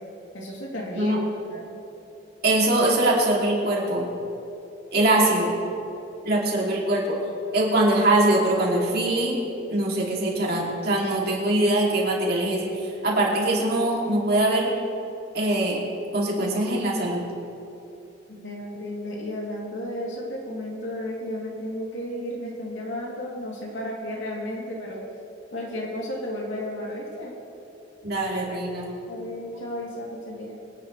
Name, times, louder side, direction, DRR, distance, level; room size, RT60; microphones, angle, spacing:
voice 1, 0.3-1.2 1.5-1.7 18.3-25.0 25.5-27.3 29.1-30.6, left 1 dB, 75° left, -3 dB, 3.0 m, -33 dB
voice 2, 2.4-4.0 4.9-5.5 6.2-7.2 7.5-9.4 9.7-12.7 13.0-14.7 15.3-15.8 16.1-17.2 28.0-28.9, right 1 dB, 55° right, -3 dB, 2.9 m, -22 dB
24.0 x 9.9 x 3.3 m, 2.9 s
head